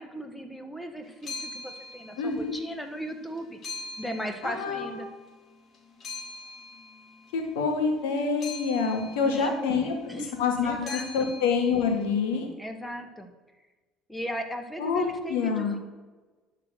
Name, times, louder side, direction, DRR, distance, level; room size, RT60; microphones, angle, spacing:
voice 1, 0.0-3.6 4.0-5.1 9.2-9.5 9.8-10.4 10.6-11.3 12.6-13.3 14.1-15.8, equal, 5° left, 6 dB, 1.5 m, -37 dB
sound 1, 1.0-2.8 3.1-5.4 5.7-12.2, left 3 dB, 40° left, 1.9 m, -43 dB
voice 2, 2.2-2.5 4.4-5.0 7.3-9.9 10.4-12.5 14.8-15.8, left 5 dB, 85° left, 3 dB, 2.2 m, -27 dB
11.5 x 4.6 x 6.4 m, 1.3 s
supercardioid pair, 90°, 0 cm